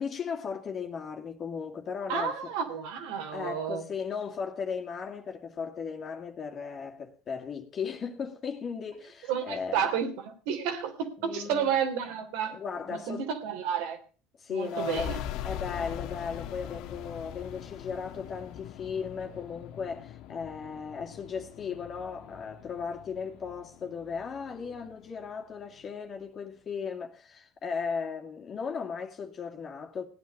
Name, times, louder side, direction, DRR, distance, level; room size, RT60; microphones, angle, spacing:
voice 1, 0.0-2.5 3.3-9.9 11.2-11.7 12.5-13.2 14.4-15.1 15.4-30.1, left 6 dB, 40° left, 2.3 m, -36 dB
voice 2, 2.1-3.8 9.3-12.6 12.9-14.0 14.5-15.2, right 7 dB, 75° right, 3.3 m, -31 dB
sound 1, 14.6-25.9, left 10 dB, 70° left, 1.5 m, -42 dB
17.0 x 9.6 x 6.6 m
supercardioid pair, 90°, 0 cm